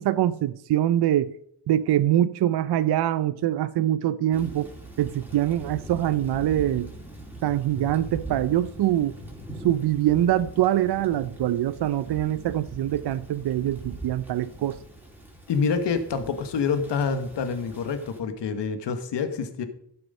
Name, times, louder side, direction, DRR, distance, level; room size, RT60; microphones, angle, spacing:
voice 1, 0.0-1.3 1.7-4.7 5.0-6.9 7.4-9.1 9.6-14.8, right 12 dB, 70° right, 14 dB, 0.6 m, -24 dB
Thunder / Rain, 4.3-18.2, right 1 dB, 5° right, 3.1 m, -42 dB
voice 2, 15.5-19.7, left 5 dB, 85° left, 9 dB, 1.2 m, -27 dB
12.5 x 7.8 x 5.4 m, 0.69 s
cardioid pair, 95°, 41 cm